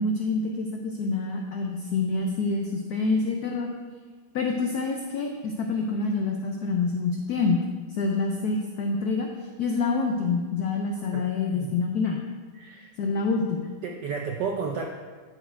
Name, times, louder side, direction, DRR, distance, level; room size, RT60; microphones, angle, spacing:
voice 1, 0.0-3.7 4.3-7.6 7.9-9.3 9.6-12.2 13.0-13.7, left 4 dB, 90° left, 2 dB, 0.8 m, -27 dB
voice 2, 12.6-12.9 13.8-14.8, right 5 dB, 75° right, 2 dB, 1.0 m, -32 dB
10.5 x 4.4 x 4.4 m, 1.5 s
omnidirectional pair, 2.4 m